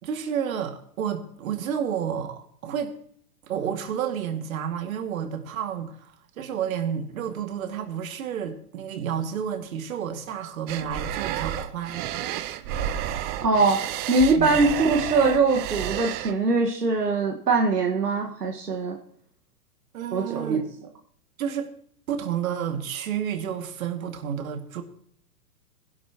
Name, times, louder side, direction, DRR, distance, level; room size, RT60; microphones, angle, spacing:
voice 1, 0.0-2.9 3.5-12.1 14.4-14.6 19.9-20.6 21.4-21.7 22.1-24.8, right 8 dB, 60° right, 6 dB, 2.3 m, -30 dB
sound 1, 10.7-16.3, right 11 dB, 20° right, 0.5 m, -31 dB
voice 2, 13.4-13.8 14.1-19.0 20.1-20.6, right 3 dB, 85° right, 1 dB, 1.8 m, -22 dB
20.5 x 11.5 x 3.0 m, 0.63 s
hypercardioid pair, 110°, 46 cm